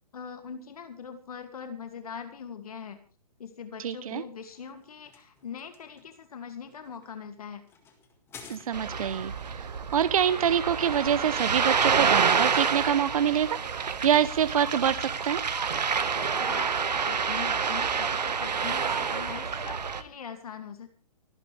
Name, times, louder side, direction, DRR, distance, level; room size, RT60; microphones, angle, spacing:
voice 1, 0.1-3.0 3.4-7.6 16.2-20.9, left 6 dB, 65° left, 8 dB, 2.5 m, -42 dB
voice 2, 3.8-4.2 8.5-15.4, right 9 dB, 60° right, 14 dB, 0.9 m, -26 dB
sound 1, 4.1-9.2, left 6 dB, 10° left, 1.9 m, -53 dB
Ocean, 8.7-20.0, right 6 dB, 90° right, 1.6 m, -28 dB
29.5 x 11.0 x 3.4 m, 0.36 s
hypercardioid pair, 160°, 21 cm